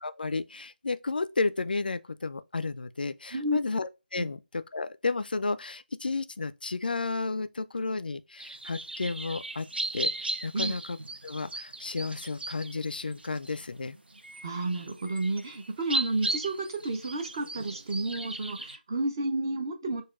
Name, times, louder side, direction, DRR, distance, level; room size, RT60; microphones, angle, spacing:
voice 1, 0.0-9.7 9.9-11.0 11.2-14.0, left 3 dB, 65° left, 0.3 m, -32 dB
sound 1, 8.4-18.8, right 2 dB, 90° right, 0.5 m, -37 dB
voice 2, 14.4-20.0, right 2 dB, 20° right, 0.5 m, -31 dB
6.3 x 2.2 x 2.4 m
figure-of-eight pair, 165°, 5 cm